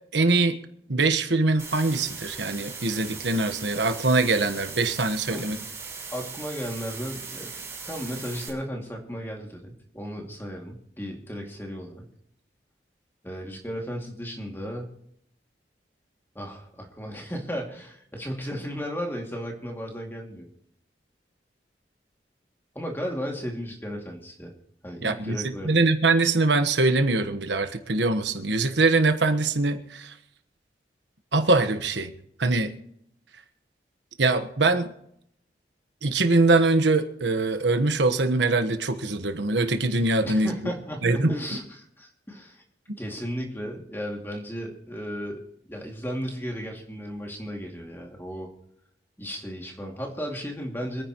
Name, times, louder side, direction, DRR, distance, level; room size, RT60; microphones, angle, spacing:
voice 1, 0.1-0.6 0.9-5.6 25.0-30.1 31.3-32.1 32.4-32.7 34.2-34.9 36.0-40.7 41.0-41.4, right 3 dB, 90° right, 9 dB, 1.3 m, -23 dB
sound 1, 1.6-8.5, right 5 dB, 15° right, 4.3 m, -39 dB
voice 2, 5.3-5.6 6.1-7.5 7.8-12.0 13.2-14.9 16.3-20.5 22.7-24.5 24.8-25.8 40.2-42.6 43.0-45.4 45.7-48.5 49.2-51.0, equal, 15° left, 1 dB, 2.4 m, -35 dB
26.5 x 9.9 x 3.1 m, 0.71 s
head